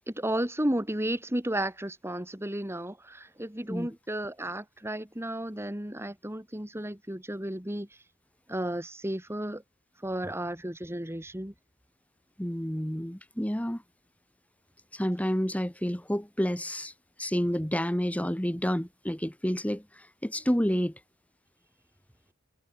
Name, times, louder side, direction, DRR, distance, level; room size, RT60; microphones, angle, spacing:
voice 1, 0.1-7.9 8.5-9.6 10.0-11.5, right 1 dB, 15° right, 2.6 m, -33 dB
voice 2, 12.4-13.8 14.9-16.9 17.2-20.9, equal, 5° left, 1.9 m, -29 dB
head